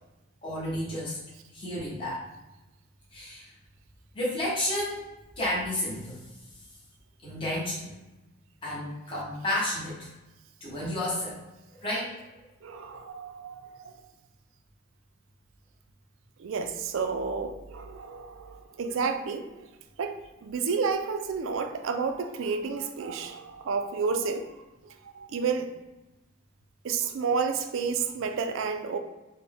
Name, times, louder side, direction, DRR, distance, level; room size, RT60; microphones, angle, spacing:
voice 1, 0.4-1.2 1.5-2.2 3.1-3.5 4.1-6.3 7.2-7.9 8.6-10.1 10.6-11.4 11.7-12.1, left 1 dB, 25° left, -6 dB, 0.9 m, -31 dB
voice 2, 12.6-14.0 16.4-19.7 20.0-24.5 24.8-25.7 26.8-29.0, right 5 dB, 60° right, 7 dB, 0.3 m, -31 dB
4.2 x 2.1 x 3.4 m, 1.1 s
head